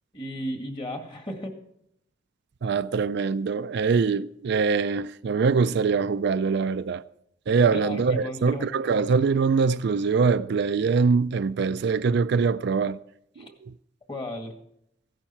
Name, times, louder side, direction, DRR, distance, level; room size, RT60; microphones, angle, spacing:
voice 1, 0.1-1.5 7.7-8.7 13.4-13.5 14.1-14.5, left 1 dB, 25° left, 2.0 m, -34 dB
voice 2, 2.6-7.0 7.5-13.0 13.4-13.7, right 5 dB, 60° right, 0.4 m, -23 dB
16.0 x 11.5 x 4.5 m
head